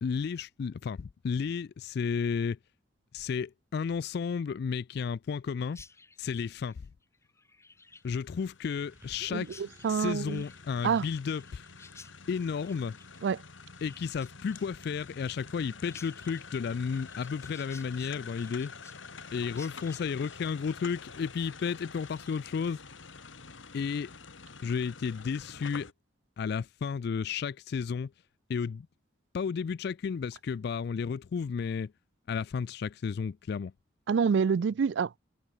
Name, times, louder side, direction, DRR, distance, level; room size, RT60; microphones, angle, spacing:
voice 1, 0.0-2.6 3.1-5.8 6.2-6.9 8.0-9.5 9.9-11.6 12.3-13.0 13.8-18.7 19.3-22.8 23.7-24.1 24.6-25.9 26.4-28.1 28.5-28.9 29.3-31.9 32.3-33.7, left 6 dB, 55° left, 0.3 m, -32 dB
Chirp tweet, 5.7-22.6, left 4 dB, 15° left, 7.7 m, -56 dB
sound 1, 7.9-25.9, left 5 dB, 80° left, 2.2 m, -48 dB
sound 2, 8.8-13.3 14.2-14.3, equal, 10° right, 5.3 m, -63 dB
voice 2, 9.3-10.4 10.8-11.1 13.2-13.4 34.1-35.2, right 6 dB, 65° right, 0.4 m, -27 dB
head